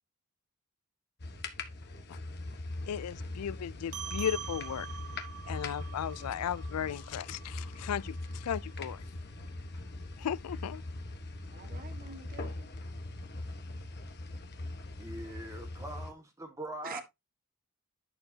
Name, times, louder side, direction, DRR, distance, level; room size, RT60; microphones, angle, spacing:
sound 1, 1.2-16.1, left 2 dB, 50° left, 1.3 m, -41 dB
voice 1, 2.9-4.9 5.5-9.0 10.2-10.8, left 9 dB, 85° left, 0.4 m, -36 dB
sound 2, 3.9-8.7, right 9 dB, 75° right, 0.8 m, -45 dB
voice 2, 11.5-12.7 16.8-17.0, right 4 dB, 40° right, 1.4 m, -46 dB
voice 3, 15.0-17.0, right 1 dB, 15° right, 1.7 m, -42 dB
10.5 x 6.7 x 2.7 m
head